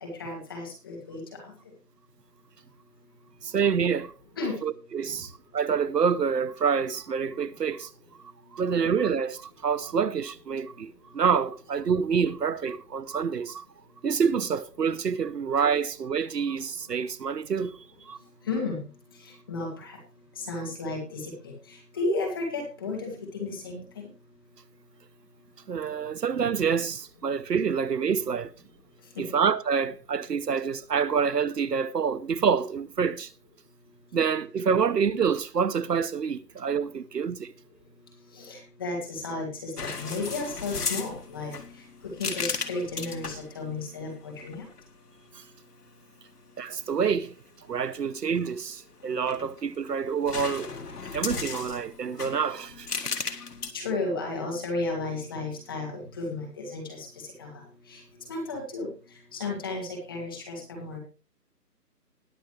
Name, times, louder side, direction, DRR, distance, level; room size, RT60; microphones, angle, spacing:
voice 1, 0.0-1.5 4.4-4.6 18.4-18.9 19.2-20.0 20.4-24.1 29.2-29.3 38.3-41.5 42.2-44.6 53.7-57.5 57.9-58.0 58.3-58.9 59.3-61.0, left 3 dB, 15° left, 2.2 m, -33 dB
voice 2, 3.4-4.1 4.6-7.9 8.5-13.6 14.0-17.8 18.1-18.2 25.7-28.5 29.2-33.3 34.1-37.5 46.6-47.3 47.7-50.7 51.1-52.9, right 6 dB, 75° right, 1.0 m, -27 dB
sound 1, 39.8-43.5 44.4-44.8 49.0-49.8 50.3-53.7, left 5 dB, 70° left, 1.8 m, -35 dB
20.0 x 6.9 x 3.2 m
hypercardioid pair, 175°, 49 cm